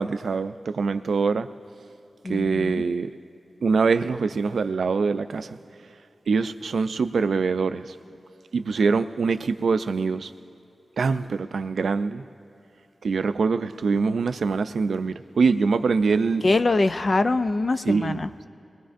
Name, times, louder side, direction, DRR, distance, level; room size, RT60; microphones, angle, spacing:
voice 1, 0.0-1.5 2.3-3.1 3.6-5.6 6.3-7.9 8.5-10.3 11.0-12.2 13.0-16.4 17.9-18.5, right 4 dB, 90° right, 0.4 m, -24 dB
voice 2, 2.2-2.8 16.4-18.3, left 2 dB, 40° left, 0.4 m, -23 dB
23.0 x 20.5 x 2.6 m
wide cardioid pair, 135°, 0 cm